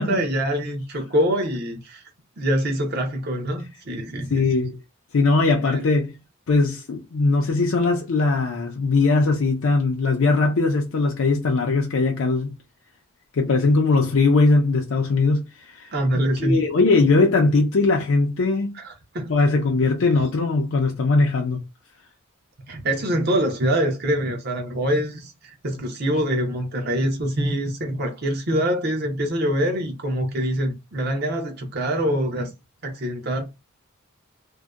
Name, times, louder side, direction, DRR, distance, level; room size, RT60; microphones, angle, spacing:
voice 1, 0.0-2.0 2.4-4.5 5.7-5.8 15.9-16.6 18.8-19.3 22.7-25.3 25.6-32.5 32.8-33.5, equal, 50° right, 0.7 m, -24 dB
voice 2, 4.3-4.8 5.1-6.2 6.5-12.5 13.4-15.9 16.4-18.8 19.3-21.6, left 3 dB, 70° left, 0.5 m, -20 dB
2.6 x 2.1 x 2.3 m
head